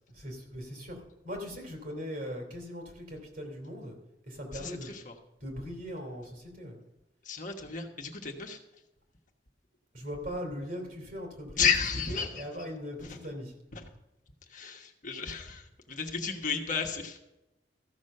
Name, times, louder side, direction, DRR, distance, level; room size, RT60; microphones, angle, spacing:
voice 1, 0.1-4.0 4.2-4.9 5.4-6.8 9.9-11.7 12.3-13.5, equal, 55° right, 2 dB, 2.9 m, -40 dB
voice 2, 4.5-5.2 7.2-8.6 11.6-12.7 13.0-13.2 13.7-13.9 14.5-17.2, left 6 dB, 50° left, 3 dB, 1.2 m, -33 dB
14.0 x 6.3 x 6.6 m, 0.93 s
head